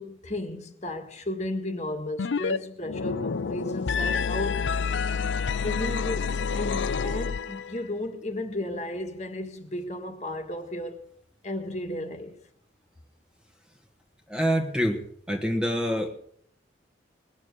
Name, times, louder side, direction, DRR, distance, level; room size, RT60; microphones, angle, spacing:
voice 1, 0.0-4.7 5.5-11.0 11.4-12.3, left 1 dB, 35° left, 1.7 m, -34 dB
sound 1, 2.2-2.6 2.8-7.8, left 5 dB, 80° left, 0.5 m, -28 dB
voice 2, 14.3-16.1, equal, 5° right, 1.6 m, -26 dB
20.5 x 7.3 x 8.2 m
head